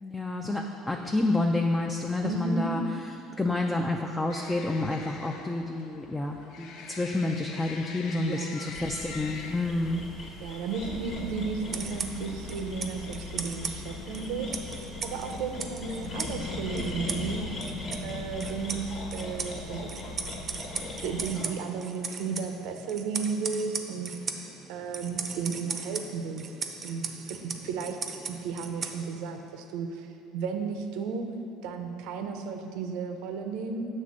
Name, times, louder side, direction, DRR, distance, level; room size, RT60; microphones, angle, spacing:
voice 1, 0.0-2.8 3.4-10.0, left 2 dB, 10° left, 2 dB, 0.4 m, -29 dB
voice 2, 2.2-2.7 8.2-8.7 10.4-14.5 15.0-17.4 18.0-19.9 20.7-26.5 26.8-28.0 28.3-31.3 31.6-33.9, right 5 dB, 75° right, 6 dB, 0.6 m, -34 dB
sound 1, 4.3-22.5, left 5 dB, 70° left, 0.5 m, -48 dB
sound 2, 8.7-21.4, left 2 dB, 50° left, 1.3 m, -38 dB
sound 3, 11.6-29.4, right 5 dB, 35° right, 0.5 m, -39 dB
7.5 x 3.3 x 6.3 m, 2.7 s
cardioid pair, 115°, 0 cm